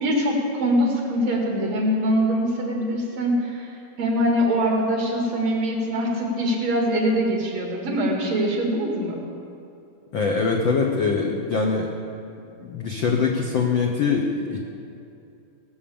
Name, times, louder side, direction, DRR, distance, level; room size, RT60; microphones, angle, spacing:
voice 1, 0.0-9.2, equal, 60° right, 0 dB, 3.1 m, -23 dB
voice 2, 10.1-11.9 12.6-14.6, left 5 dB, 70° left, 1 dB, 1.1 m, -23 dB
18.0 x 7.2 x 7.0 m, 2.6 s
omnidirectional pair, 3.4 m